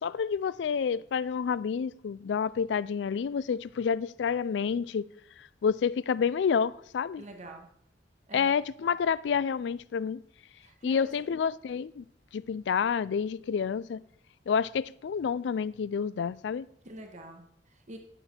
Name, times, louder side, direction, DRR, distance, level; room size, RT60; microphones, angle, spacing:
voice 1, 0.0-5.1 5.6-7.2 8.3-10.2 10.8-12.0 12.3-14.0 14.5-16.7, left 6 dB, 70° left, 0.3 m, -29 dB
voice 2, 7.2-7.7 8.3-8.6 10.6-11.2 16.8-18.0, right 1 dB, 40° right, 1.1 m, -46 dB
11.0 x 6.8 x 4.3 m
head